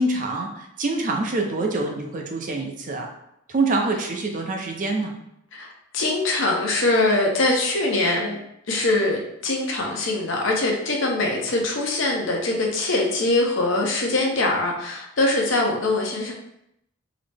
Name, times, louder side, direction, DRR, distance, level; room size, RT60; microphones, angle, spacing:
voice 1, 0.0-3.1 3.5-5.1, right 2 dB, 40° right, 2 dB, 0.5 m, -25 dB
voice 2, 5.5-8.4 8.7-16.3, left 2 dB, 65° left, 0 dB, 0.7 m, -23 dB
3.9 x 2.0 x 3.3 m, 0.77 s
head